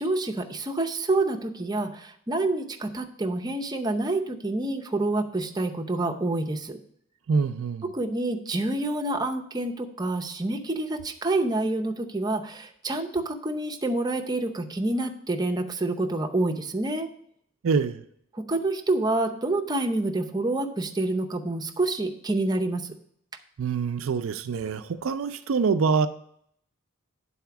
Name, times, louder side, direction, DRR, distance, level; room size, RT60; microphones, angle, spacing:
voice 1, 0.0-6.8 7.9-17.1 18.3-22.9, right 2 dB, 20° right, 3 dB, 0.6 m, -27 dB
voice 2, 7.3-7.9 17.6-18.0 23.6-26.1, right 5 dB, 65° right, 10 dB, 0.4 m, -25 dB
9.3 x 4.2 x 5.8 m, 0.68 s
head